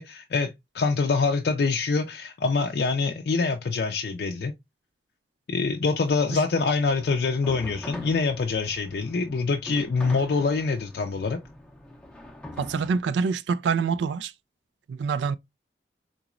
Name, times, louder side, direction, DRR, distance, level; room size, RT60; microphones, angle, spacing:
voice 1, 0.0-4.5 5.5-11.4, left 4 dB, 65° left, 0.4 m, -25 dB
sound 1, 6.8-13.0, left 1 dB, 5° left, 0.5 m, -43 dB
voice 2, 12.6-14.3 14.9-15.4, right 5 dB, 90° right, 0.3 m, -26 dB
3.8 x 3.0 x 2.3 m
head